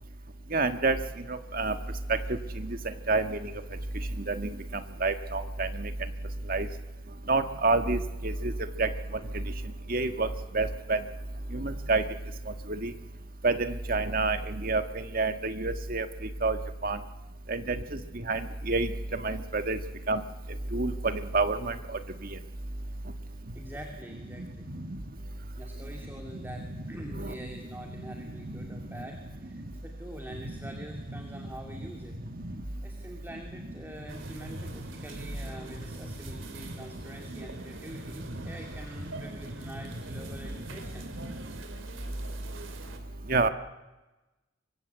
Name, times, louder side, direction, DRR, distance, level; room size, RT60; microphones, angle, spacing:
voice 1, 0.5-1.0 1.3-1.8 2.7-2.8 3.1-3.4 4.2-5.9 6.5-6.7 7.3-8.5 8.8-8.9 9.3-9.4 9.9-10.3 10.5-11.0 11.5-12.0 12.7-12.9 13.4-16.1 16.4-16.6 16.8-17.0 17.5-18.0 18.3-18.4 18.7-18.9 19.2-19.8 20.1-20.2 20.7-21.7 24.4-24.5 27.2-27.4 28.5-28.6 30.4-30.5 32.3-32.5 41.2-41.3 43.3-43.5, right 3 dB, 50° right, 8 dB, 1.5 m, -28 dB
voice 2, 23.5-24.7 25.6-32.2 32.8-41.1, equal, 10° right, 2 dB, 2.5 m, -45 dB
sound 1, 34.1-43.0, right 2 dB, 90° right, 3.0 m, -45 dB
24.5 x 23.0 x 8.0 m, 1.1 s
head